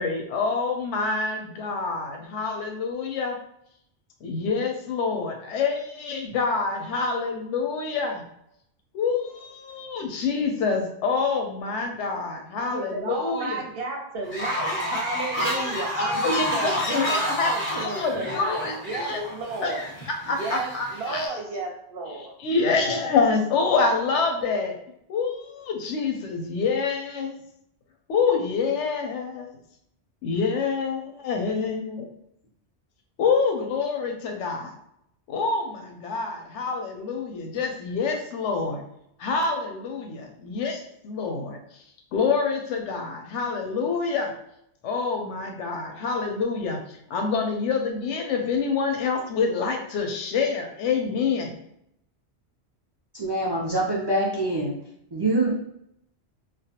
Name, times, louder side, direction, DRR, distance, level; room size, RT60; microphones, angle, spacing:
voice 1, 0.0-3.4 4.2-8.2 8.9-13.6 15.4-19.2 19.6-19.7 20.2-21.3 22.4-24.8 25.1-27.4 28.1-29.5 30.2-32.1 33.2-34.7 35.3-38.8 39.2-41.6 42.1-44.3 44.8-51.6, left 4 dB, 85° left, 3 dB, 0.9 m, -26 dB
voice 2, 12.7-19.8 20.3-22.4, right 3 dB, 65° right, 1 dB, 0.7 m, -33 dB
Fowl, 14.2-21.3, equal, 15° left, 0.6 m, -30 dB
voice 3, 53.1-54.8 55.1-55.5, right 2 dB, 40° right, -6 dB, 0.3 m, -24 dB
2.4 x 2.1 x 2.7 m, 0.76 s
omnidirectional pair, 1.2 m